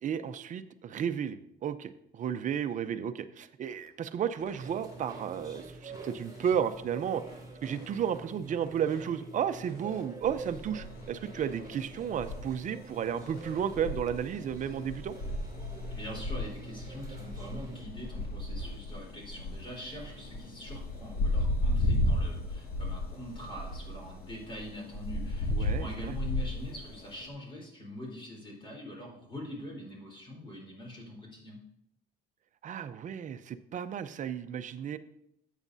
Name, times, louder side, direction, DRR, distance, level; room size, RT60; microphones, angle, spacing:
voice 1, 0.0-7.2 7.6-15.1 25.5-26.1 32.6-35.0, right 8 dB, 50° right, 11 dB, 0.7 m, -33 dB
sound 1, 3.7-3.9 4.1-5.2 5.8-6.0 6.3-8.2 8.6-9.0 9.6-10.0 10.4-10.5 10.7-10.8 10.9-11.7 12.2-12.3 12.7-14.4, left 4 dB, 85° left, 1.8 m, -55 dB
sound 2, 4.6-17.8, right 3 dB, 20° right, 3.0 m, -47 dB
sound 3, 10.2-27.3, left 1 dB, 60° left, 2.1 m, -34 dB
voice 2, 15.9-31.6, left 1 dB, 30° left, -2 dB, 4.1 m, -44 dB
13.0 x 8.3 x 2.7 m, 0.76 s
cardioid pair, 110°, 17 cm